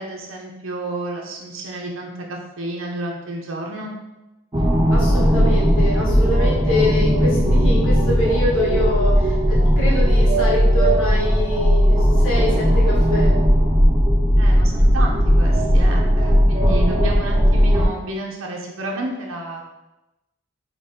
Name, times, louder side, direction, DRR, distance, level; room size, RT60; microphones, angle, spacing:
voice 1, 0.0-3.9 14.4-19.6, right 1 dB, 80° right, -1 dB, 0.7 m, -31 dB
sound 1, 4.5-17.8, equal, 20° right, 0.5 m, -17 dB
voice 2, 4.9-13.3, left 1 dB, 85° left, -5 dB, 1.4 m, -25 dB
5.1 x 2.9 x 2.8 m, 0.99 s
head